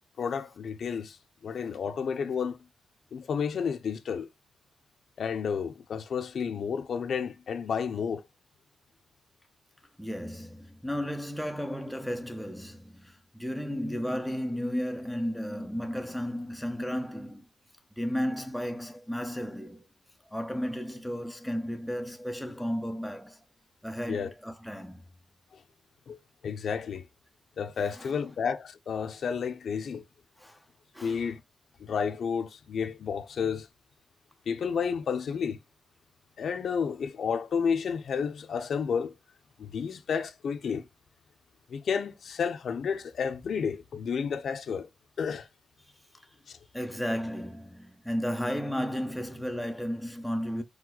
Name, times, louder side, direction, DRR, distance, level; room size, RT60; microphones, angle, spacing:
voice 1, 0.2-1.2 1.4-2.6 3.1-4.3 5.2-8.2 24.1-24.3 26.1-26.2 26.4-27.0 27.6-30.0 31.0-31.4 31.8-33.7 34.5-35.6 36.4-39.1 39.6-40.8 41.7-44.9 45.2-45.5 46.5-46.6, left 6 dB, 55° left, 0.8 m, -31 dB
voice 2, 10.0-17.5 18.0-19.9 20.3-23.4 23.8-25.0 27.8-28.4 30.4-30.6 30.9-31.3 46.7-50.6, equal, ahead, 0.7 m, -34 dB
5.3 x 4.8 x 4.0 m
wide cardioid pair, 160°, 0 cm